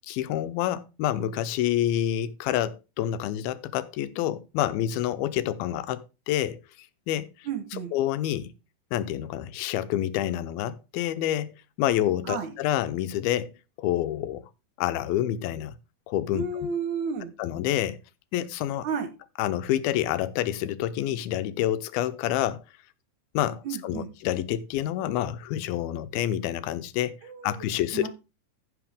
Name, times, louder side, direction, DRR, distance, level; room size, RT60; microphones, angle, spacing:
voice 1, 0.1-6.0 6.3-6.6 7.1-7.3 7.9-8.5 8.9-13.5 13.8-14.4 14.8-15.8 16.1-16.7 17.4-18.0 18.3-18.9 19.4-22.6 23.3-27.2 27.4-28.1, left 12 dB, 90° left, 2.6 m, -28 dB
voice 2, 7.5-7.9 12.3-12.5 16.3-17.3 18.8-19.1 23.6-24.1 27.2-27.6 27.9-28.1, right 5 dB, 65° right, 2.3 m, -32 dB
15.0 x 5.7 x 3.5 m
omnidirectional pair, 4.2 m